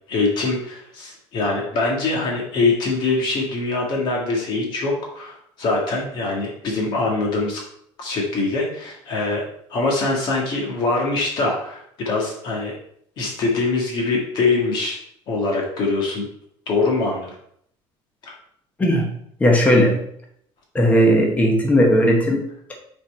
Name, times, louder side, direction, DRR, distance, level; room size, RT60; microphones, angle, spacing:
voice 1, 0.1-7.6 8.0-9.4 9.7-12.8 13.2-15.0 15.3-16.3 16.7-17.4 18.2-18.3, left 3 dB, 45° left, -1 dB, 1.6 m, -23 dB
voice 2, 18.8-19.1 19.4-20.0 20.7-22.8, equal, 15° left, 1 dB, 1.0 m, -17 dB
6.6 x 4.4 x 4.3 m, 0.68 s
cardioid pair, 175°, 11 cm